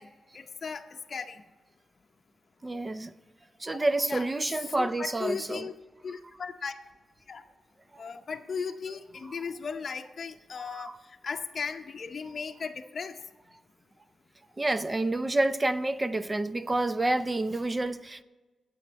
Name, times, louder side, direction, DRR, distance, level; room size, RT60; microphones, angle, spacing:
voice 1, 0.0-1.4 3.7-5.7 6.0-6.7 7.3-7.4 8.0-13.2, left 5 dB, 55° left, 0.6 m, -37 dB
voice 2, 2.6-3.1 3.6-5.7 7.9-8.0 10.6-11.0 14.6-18.2, right 2 dB, 25° right, 0.5 m, -29 dB
9.0 x 7.7 x 8.9 m
cardioid pair, 70°, 0 cm